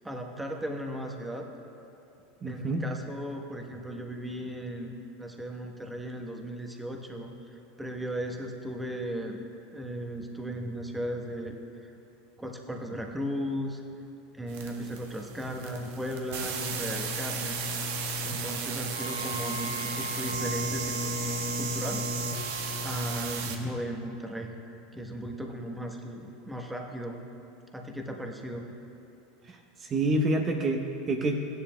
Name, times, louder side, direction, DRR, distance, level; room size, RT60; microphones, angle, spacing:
voice 1, 0.0-1.5 2.4-11.9 12.4-13.8 14.3-17.6 18.2-22.1 22.8-24.5 24.9-27.2 27.7-28.6, equal, 5° right, 1 dB, 1.0 m, -36 dB
voice 2, 2.4-2.8 29.5-31.3, right 2 dB, 35° right, 2 dB, 0.8 m, -28 dB
sound 1, 14.5-23.6, right 3 dB, 75° right, 1.1 m, -34 dB
Wind instrument woodwind instrument, 18.9-23.4, right 1 dB, 85° left, 0.5 m, -40 dB
15.5 x 10.5 x 2.2 m, 2.8 s
hypercardioid pair, 105°, 0 cm